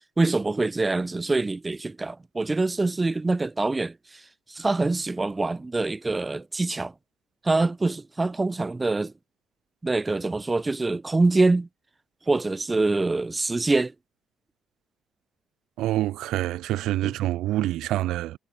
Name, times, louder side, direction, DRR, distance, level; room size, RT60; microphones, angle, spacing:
voice 1, 0.2-4.2 4.5-6.9 7.4-9.1 9.8-11.7 12.3-13.9 17.0-17.1, right 3 dB, 25° right, 1.0 m, -25 dB
voice 2, 15.8-18.4, right 14 dB, 75° right, 1.1 m, -26 dB
hypercardioid pair, 50°, 0 cm